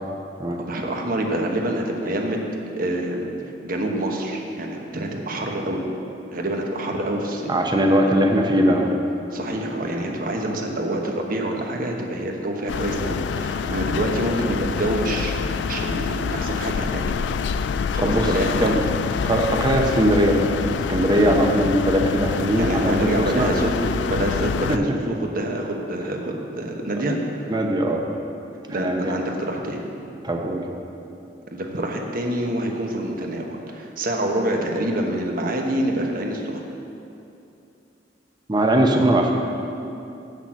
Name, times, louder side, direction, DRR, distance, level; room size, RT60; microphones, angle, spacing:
voice 1, 0.6-2.4 2.8-3.3 3.6-5.8 6.3-7.5 8.0-8.1 9.3-17.3 17.9-18.8 21.3-21.4 22.6-27.2 28.7-29.9 31.5-36.7, right 1 dB, 55° right, 1 dB, 1.1 m, -26 dB
voice 2, 7.5-9.0 18.0-18.3 18.6-18.8 19.2-23.5 24.7-24.8 27.5-28.0 28.7-29.1 30.2-30.6 38.5-39.3, right 1 dB, 25° right, 2 dB, 0.8 m, -20 dB
sound 1, 12.7-24.8, left 6 dB, 80° left, 0.3 m, -26 dB
7.8 x 6.6 x 7.3 m, 2.7 s
head